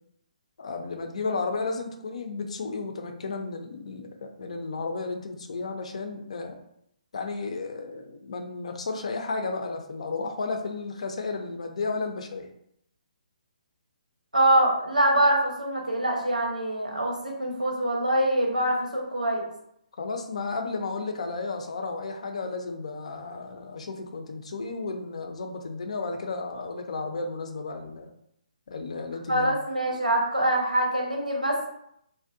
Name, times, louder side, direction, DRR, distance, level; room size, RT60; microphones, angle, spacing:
voice 1, 0.6-6.6 7.1-12.5 20.0-28.1 28.7-29.6, left 3 dB, 55° left, 5 dB, 0.4 m, -33 dB
voice 2, 14.3-19.4 29.3-31.7, right 1 dB, 85° right, -1 dB, 0.8 m, -24 dB
2.5 x 2.1 x 2.5 m, 0.73 s
figure-of-eight pair, 135°, 4 cm